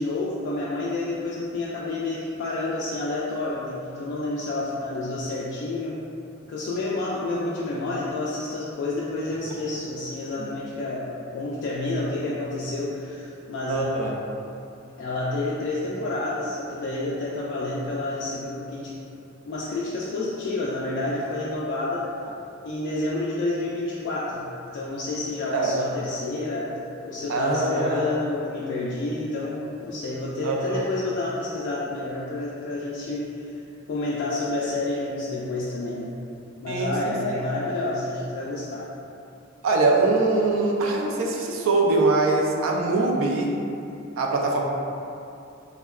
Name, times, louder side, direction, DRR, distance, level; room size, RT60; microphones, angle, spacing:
voice 1, 0.0-6.0 6.5-13.9 15.0-19.0 19.5-22.1 22.6-33.6 33.9-36.2 36.6-38.9, left 2 dB, 60° left, -6 dB, 0.3 m, -29 dB
voice 2, 13.7-14.1 25.5-25.7 27.3-28.0 30.4-30.9 36.7-37.1 39.6-43.6 44.2-44.6, right 3 dB, 75° right, 0 dB, 0.4 m, -23 dB
3.5 x 2.1 x 2.3 m, 2.7 s
head